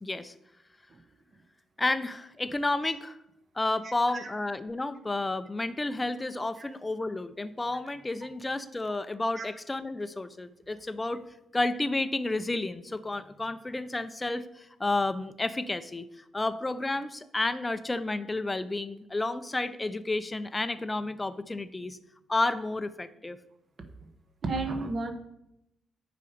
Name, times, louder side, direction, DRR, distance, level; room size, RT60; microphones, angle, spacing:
voice 1, 0.0-0.3 1.8-3.2 3.6-11.2 11.5-22.0 22.3-23.4, left 2 dB, 15° left, 12 dB, 0.5 m, -31 dB
voice 2, 24.4-25.1, right 3 dB, 45° right, 7 dB, 1.1 m, -32 dB
8.4 x 5.1 x 5.1 m, 0.84 s
cardioid pair, 115°, 0 cm